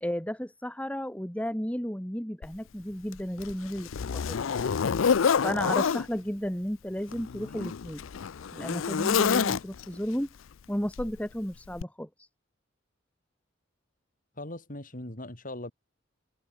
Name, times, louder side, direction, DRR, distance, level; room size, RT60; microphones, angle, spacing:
voice 1, 0.0-4.4 5.4-8.0 8.5-10.3 10.7-12.1, equal, 5° left, 2.7 m, -33 dB
Zipper (clothing), 2.4-2.5 3.1-6.1 7.0-10.0 11.0-11.2 11.8-11.9, left 6 dB, 90° left, 0.5 m, -27 dB
voice 2, 14.4-15.7, left 1 dB, 45° left, 4.8 m, -39 dB
head